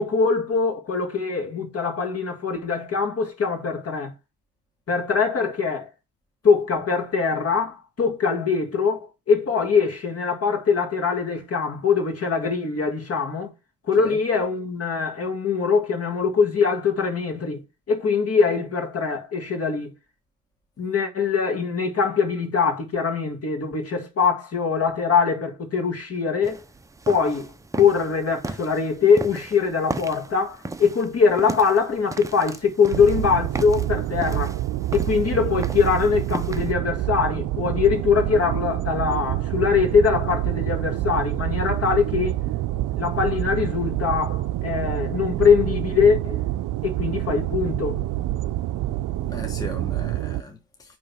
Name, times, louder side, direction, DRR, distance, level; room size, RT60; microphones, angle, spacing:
voice 1, 0.0-4.1 4.9-5.9 6.4-9.0 9.3-13.5 13.9-17.6 17.9-19.9 20.8-26.6 27.1-27.5 27.7-34.6 34.9-42.3 43.0-46.4 46.8-48.0, left 5 dB, 40° left, 1.8 m, -22 dB
sound 1, 26.4-36.7, right 3 dB, 10° right, 0.5 m, -36 dB
sound 2, 32.9-50.4, right 15 dB, 55° right, 0.5 m, -27 dB
voice 2, 49.2-51.0, left 2 dB, 10° left, 0.9 m, -38 dB
8.8 x 3.2 x 4.2 m
cardioid pair, 95°, 38 cm